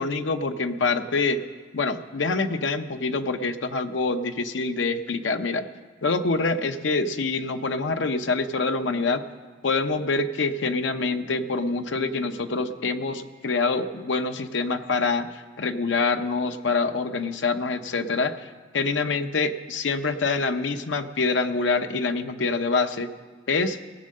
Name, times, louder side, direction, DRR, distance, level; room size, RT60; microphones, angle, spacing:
voice 1, 0.0-1.4 1.7-5.7 6.0-9.2 9.6-18.5 18.7-23.1 23.5-23.8, left 3 dB, 85° left, 8 dB, 0.7 m, -25 dB
17.5 x 7.5 x 6.5 m, 1.5 s
head